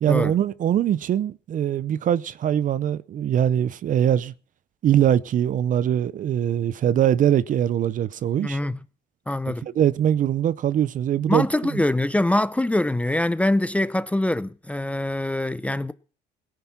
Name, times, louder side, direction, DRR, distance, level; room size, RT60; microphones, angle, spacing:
voice 1, 0.0-4.3 4.8-8.6 9.5-11.5 11.7-11.8, right 10 dB, 50° right, 0.6 m, -22 dB
voice 2, 8.4-8.8 9.3-9.6 11.3-15.9, left 1 dB, 10° left, 0.7 m, -24 dB
17.5 x 10.5 x 5.8 m
cardioid pair, 110°, 17 cm